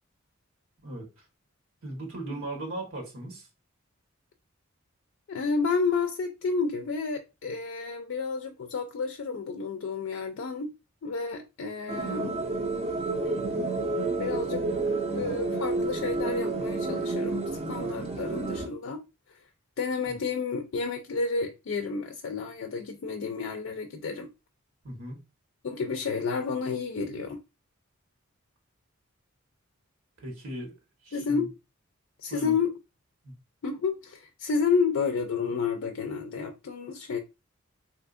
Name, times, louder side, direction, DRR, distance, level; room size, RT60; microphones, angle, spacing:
voice 1, 1.8-3.5 20.0-20.2 24.8-25.2 30.2-30.7 31.0-31.5 32.3-32.6 33.2-33.3, right 1 dB, 80° right, 1.3 m, -38 dB
voice 2, 5.3-10.7 11.0-12.4 14.2-14.6 15.1-19.0 19.3-19.4 19.8-24.3 25.6-27.4 31.1-31.5 32.2-32.7 33.6-37.2, left 5 dB, 65° left, 0.4 m, -30 dB
sound 1, 11.9-18.7, right 3 dB, 30° right, 0.5 m, -30 dB
3.5 x 2.7 x 2.4 m
head